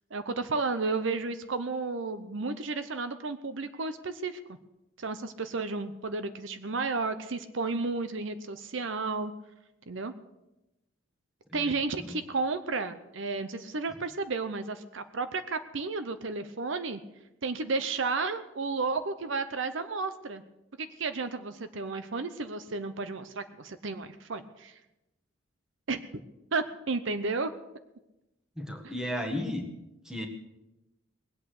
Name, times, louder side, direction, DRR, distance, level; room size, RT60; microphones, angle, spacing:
voice 1, 0.1-4.4 5.0-9.3 9.9-10.1 11.5-17.0 17.4-20.4 20.8-24.8 25.9-26.0 26.5-27.5, right 3 dB, 65° right, 11 dB, 0.7 m, -32 dB
voice 2, 11.5-12.2 28.6-29.7 30.0-30.3, left 1 dB, 5° right, 3 dB, 1.6 m, -35 dB
20.0 x 8.5 x 6.5 m, 0.95 s
head